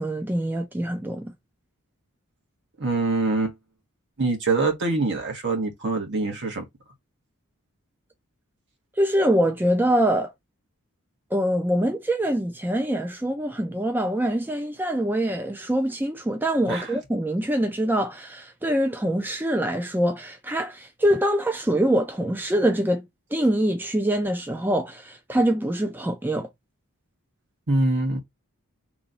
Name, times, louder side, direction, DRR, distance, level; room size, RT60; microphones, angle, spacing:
voice 1, 0.0-1.3 9.0-10.3 11.3-23.0 23.3-26.5, right 1 dB, 10° right, 0.5 m, -24 dB
voice 2, 2.8-3.5 4.2-6.7 16.7-16.9 27.7-28.2, right 3 dB, 55° right, 1.4 m, -24 dB
3.1 x 3.1 x 3.8 m
head